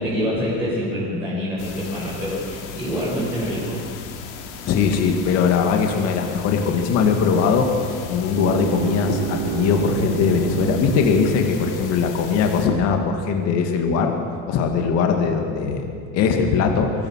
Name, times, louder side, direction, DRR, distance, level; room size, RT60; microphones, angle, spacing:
voice 1, 0.0-3.9, equal, 5° right, -10 dB, 6.6 m, -26 dB
sound 1, 1.6-12.7, left 6 dB, 85° left, 3.1 m, -37 dB
voice 2, 4.6-7.7 8.1-14.1 14.5-16.9, left 6 dB, 45° left, 3 dB, 2.5 m, -20 dB
sound 2, 8.3-12.3, right 13 dB, 55° right, 1.2 m, -29 dB
23.0 x 19.5 x 6.7 m, 2.3 s
cardioid pair, 150°, 34 cm